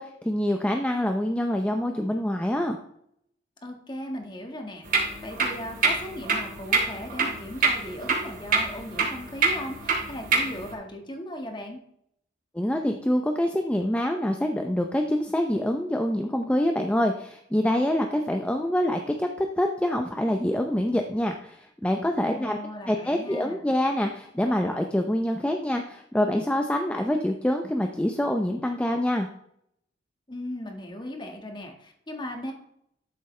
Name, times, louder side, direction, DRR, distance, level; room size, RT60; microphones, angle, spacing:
voice 1, 0.0-2.8 12.5-22.6 22.9-29.3, left 1 dB, 5° left, 4 dB, 0.5 m, -26 dB
voice 2, 3.6-11.8 22.3-23.6 30.3-32.5, left 1 dB, 25° left, 3 dB, 1.5 m, -37 dB
sound 1, 4.8-10.7, right 4 dB, 50° right, 2.5 m, -27 dB
12.5 x 7.3 x 3.2 m, 0.73 s
head